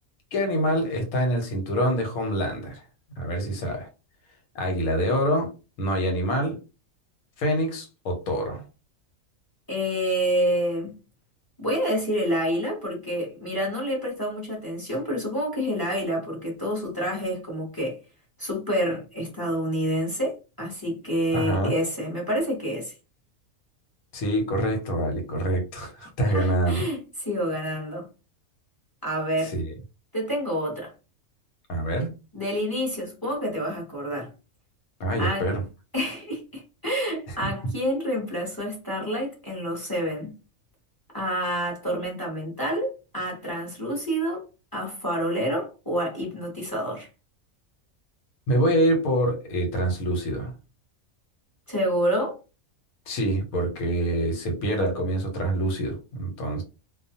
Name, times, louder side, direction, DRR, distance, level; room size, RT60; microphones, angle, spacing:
voice 1, 0.3-2.8 3.2-3.9 4.5-5.5 5.8-6.6 7.4-8.6 21.3-21.8 24.1-26.8 29.4-29.7 31.7-32.1 35.0-35.6 37.3-37.4 48.5-50.5 53.1-56.6, right 1 dB, 90° left, 1.3 m, -25 dB
voice 2, 9.7-10.9 11.6-18.0 18.4-22.9 26.3-27.0 27.3-28.0 29.0-29.5 30.1-30.9 32.3-34.3 35.2-35.5 35.9-40.3 41.1-44.4 44.7-47.1 51.7-52.4, equal, 20° left, 0.7 m, -28 dB
2.3 x 2.3 x 2.7 m
omnidirectional pair, 1.4 m